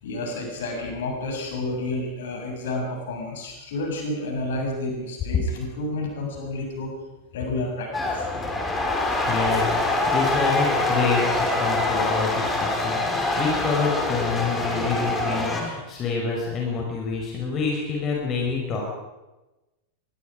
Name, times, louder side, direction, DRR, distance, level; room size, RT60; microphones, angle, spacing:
voice 1, 0.0-6.9 7.3-8.3, left 2 dB, 60° left, 1 dB, 7.3 m, -30 dB
sound 1, 7.9-15.6, left 2 dB, 10° left, 4.5 m, -24 dB
voice 2, 9.2-18.8, left 4 dB, 30° left, -1 dB, 5.2 m, -27 dB
24.5 x 21.5 x 5.1 m, 1.1 s
figure-of-eight pair, 90°, 0 cm